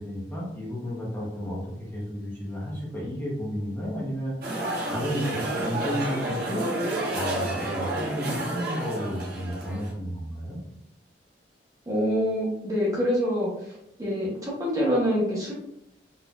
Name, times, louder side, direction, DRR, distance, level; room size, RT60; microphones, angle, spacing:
voice 1, 0.0-4.3 4.9-6.7 7.1-10.6, equal, 10° left, -5 dB, 0.8 m, -32 dB
sound 1, 4.4-9.9, right 1 dB, 60° right, 0.9 m, -30 dB
voice 2, 11.9-13.7 14.0-15.5, equal, 20° right, -5 dB, 0.8 m, -26 dB
4.1 x 2.5 x 2.2 m, 0.76 s
head